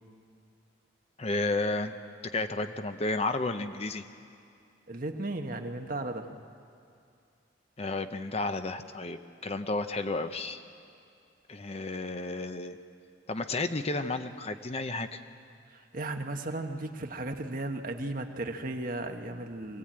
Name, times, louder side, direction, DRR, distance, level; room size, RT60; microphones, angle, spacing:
voice 1, 1.2-2.0 2.3-4.0 7.8-10.6 11.5-12.8 13.3-15.2, left 2 dB, 35° left, 9 dB, 0.7 m, -32 dB
voice 2, 4.9-6.4 15.7-19.8, right 2 dB, 45° right, 5 dB, 1.2 m, -35 dB
23.5 x 17.0 x 8.8 m, 2.4 s
head